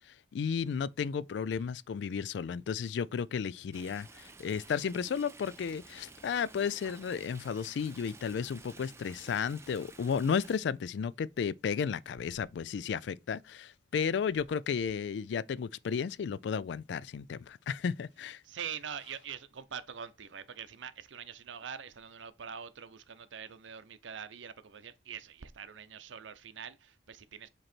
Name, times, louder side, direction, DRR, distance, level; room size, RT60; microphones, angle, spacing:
voice 1, 0.3-18.4, left 6 dB, 70° left, 0.3 m, -33 dB
Stream, 3.7-10.6, right 3 dB, 15° right, 0.5 m, -53 dB
voice 2, 18.4-27.5, right 7 dB, 85° right, 0.6 m, -44 dB
7.6 x 3.0 x 4.3 m
head